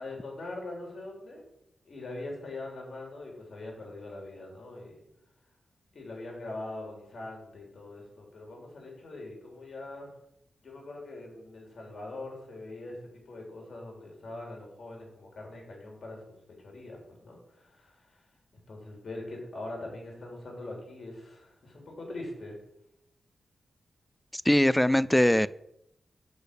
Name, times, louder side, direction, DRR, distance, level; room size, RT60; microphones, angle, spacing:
voice 1, 0.0-1.4 1.9-5.0 5.9-10.1 10.6-18.2 18.7-22.6, left 2 dB, 60° left, 0 dB, 3.0 m, -42 dB
voice 2, 24.3-25.5, left 1 dB, 10° left, 18 dB, 0.3 m, -22 dB
6.3 x 5.1 x 6.6 m, 0.79 s
cardioid pair, 70°, 0 cm